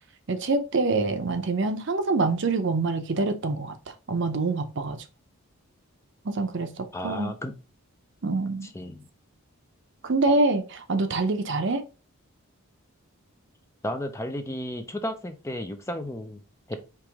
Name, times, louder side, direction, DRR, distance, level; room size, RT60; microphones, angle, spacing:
voice 1, 0.3-5.0 6.2-7.3 8.2-8.7 10.0-11.8, right 3 dB, 55° right, 0.7 m, -26 dB
voice 2, 6.9-7.5 8.6-9.1 13.8-16.4 16.7-16.8, left 1 dB, 15° left, 0.4 m, -33 dB
4.7 x 3.0 x 3.5 m
head